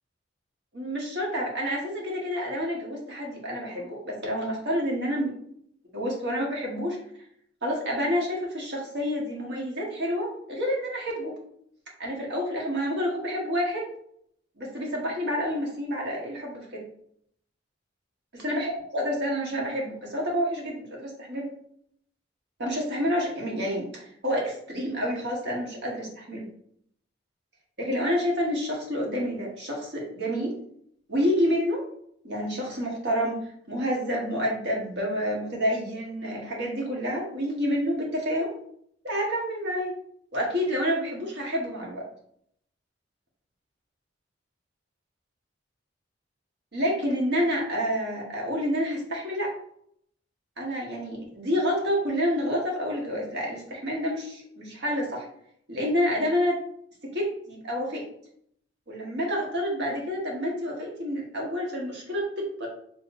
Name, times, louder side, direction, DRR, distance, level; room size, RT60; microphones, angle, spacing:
voice 1, 0.7-5.3 5.9-7.0 7.6-11.4 12.0-13.9 14.6-16.8 18.4-21.5 22.6-26.5 27.8-30.6 31.1-31.8 32.2-38.5 39.0-39.9 40.3-42.1 46.7-49.5 50.6-55.3 55.7-56.6 57.0-58.0 58.9-62.7, equal, 65° right, -2 dB, 1.5 m, -28 dB
5.0 x 3.4 x 2.6 m, 0.68 s
head